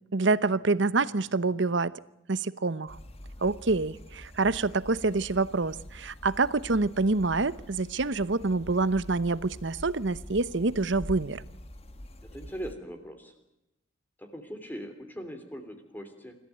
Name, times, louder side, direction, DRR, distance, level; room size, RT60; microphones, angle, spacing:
voice 1, 0.1-2.0 2.3-3.0 3.4-11.4, right 3 dB, 65° right, 17 dB, 0.9 m, -27 dB
sound 1, 2.9-12.7, left 1 dB, 30° left, 1.6 m, -45 dB
voice 2, 12.3-13.3 14.2-16.4, equal, 10° left, 7 dB, 3.0 m, -40 dB
26.5 x 14.5 x 9.1 m, 0.89 s
head